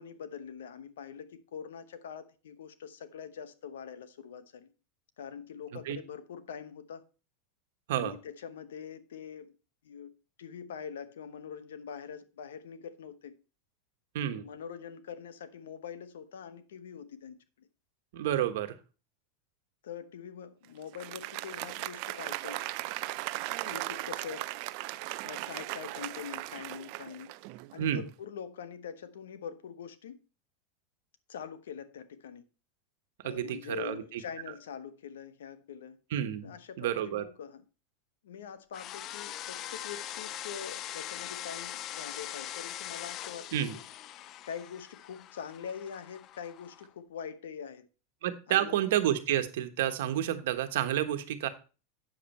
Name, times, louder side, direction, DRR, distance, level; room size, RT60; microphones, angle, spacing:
voice 1, 0.0-4.7 5.2-7.0 7.9-9.5 9.8-10.1 10.4-13.3 14.4-17.7 19.8-22.6 23.6-24.5 25.2-27.3 27.7-30.2 31.3-32.4 33.2-36.0 36.4-37.6 38.2-43.6 44.4-47.8 48.5-48.8, left 7 dB, 85° left, 1.0 m, -44 dB
voice 2, 18.1-18.8 27.8-28.0 33.2-34.2 36.1-37.2 43.5-43.8 48.2-51.5, right 11 dB, 75° right, 1.2 m, -30 dB
Applause, 20.8-27.8, right 19 dB, 55° right, 0.4 m, -38 dB
sound 1, 38.7-46.9, left 12 dB, 40° left, 0.4 m, -42 dB
8.4 x 7.1 x 4.3 m
supercardioid pair, 125°, 0 cm